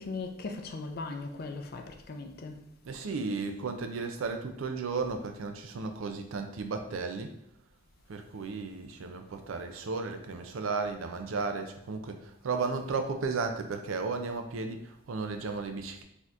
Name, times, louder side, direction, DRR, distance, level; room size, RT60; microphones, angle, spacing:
voice 1, 0.0-2.6, left 3 dB, 50° left, 0.4 m, -38 dB
voice 2, 2.9-7.3 8.1-16.0, right 4 dB, 90° right, 0.5 m, -34 dB
4.1 x 2.8 x 2.5 m
head